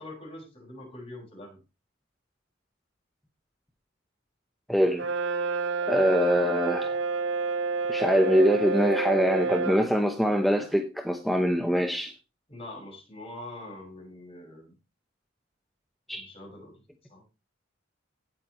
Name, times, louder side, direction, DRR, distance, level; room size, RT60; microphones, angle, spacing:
voice 1, 0.0-1.6 12.5-14.7 16.1-16.8 17.1-17.2, left 1 dB, 30° left, 6.1 m, -43 dB
voice 2, 4.7-5.0 5.9-7.0 7.9-12.1 16.1-16.2, equal, ahead, 1.0 m, -24 dB
Brass instrument, 5.0-9.9, right 4 dB, 75° right, 1.5 m, -29 dB
17.0 x 8.3 x 3.2 m
head